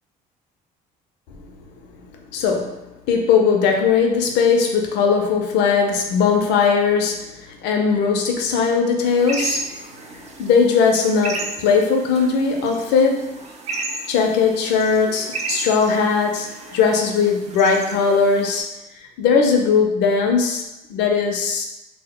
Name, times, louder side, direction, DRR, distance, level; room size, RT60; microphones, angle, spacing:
voice 1, 2.3-2.8 3.1-9.7 10.1-13.4 14.1-18.7 19.2-20.6 20.9-21.7, left 5 dB, 90° left, 2 dB, 0.5 m, -19 dB
sound 1, 9.2-18.6, right 3 dB, 40° right, 0.4 m, -33 dB
2.1 x 2.0 x 3.5 m, 0.94 s
cardioid pair, 110°, 17 cm